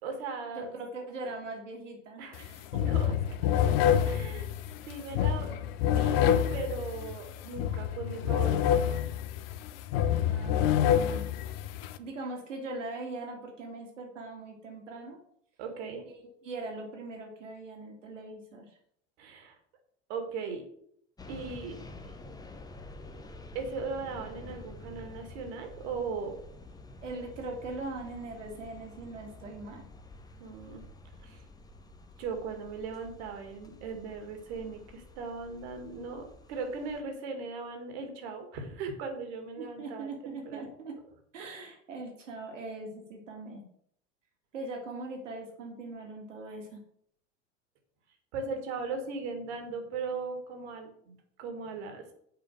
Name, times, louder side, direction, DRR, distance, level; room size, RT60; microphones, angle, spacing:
voice 1, 0.0-0.7 2.2-2.5 2.8-3.2 4.0-4.5 4.9-5.5 5.8-6.2 6.5-8.8 15.6-16.0 19.2-19.6 20.1-20.6 21.3-21.8 23.5-26.4 30.4-30.8 31.2-31.4 32.2-40.7 41.4-41.5 48.3-52.1, right 4 dB, 55° right, 5 dB, 2.1 m, -38 dB
voice 2, 0.5-2.8 10.3-11.3 12.0-15.2 16.0-18.7 27.0-29.9 39.6-40.9 41.3-43.6 44.5-46.8, right 2 dB, 70° right, 2 dB, 2.3 m, -41 dB
sound 1, 2.3-2.5 2.7-12.0, left 9 dB, 50° left, 0.7 m, -27 dB
sound 2, 21.2-37.0, left 2 dB, 10° left, 0.9 m, -49 dB
7.7 x 5.1 x 6.3 m, 0.69 s
figure-of-eight pair, 75°, 38 cm